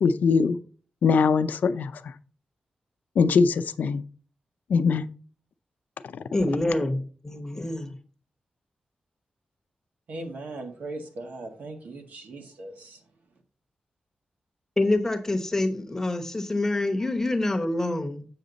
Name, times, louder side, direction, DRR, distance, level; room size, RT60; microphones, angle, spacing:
voice 1, 0.0-0.6 1.0-1.9 3.2-4.0 4.7-5.1, left 5 dB, 80° left, 11 dB, 0.5 m, -21 dB
voice 2, 6.3-7.9 14.8-18.3, left 2 dB, 15° left, 5 dB, 0.9 m, -26 dB
voice 3, 10.1-13.0, right 2 dB, 75° right, 4 dB, 1.7 m, -39 dB
7.7 x 6.3 x 4.0 m, 0.40 s
wide cardioid pair, 175°, 3 cm